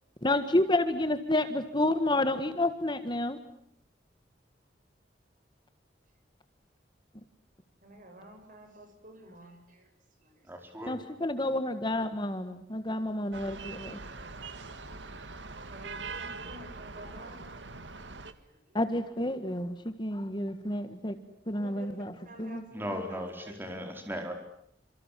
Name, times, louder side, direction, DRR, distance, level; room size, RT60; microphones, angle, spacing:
voice 1, 0.2-3.4 10.9-14.0 18.7-21.2 21.5-22.1 22.4-22.6, left 1 dB, 25° left, 10 dB, 1.8 m, -29 dB
voice 2, 7.8-9.9 10.2-10.9 15.2-17.4 18.4-18.8 21.6-23.9, equal, 50° right, 6 dB, 7.9 m, -51 dB
voice 3, 10.5-10.9 22.7-23.3 23.6-24.3, equal, 10° right, 3 dB, 4.5 m, -36 dB
sound 1, 13.3-18.3, right 4 dB, 85° right, 2.1 m, -42 dB
29.0 x 27.0 x 7.7 m, 0.70 s
head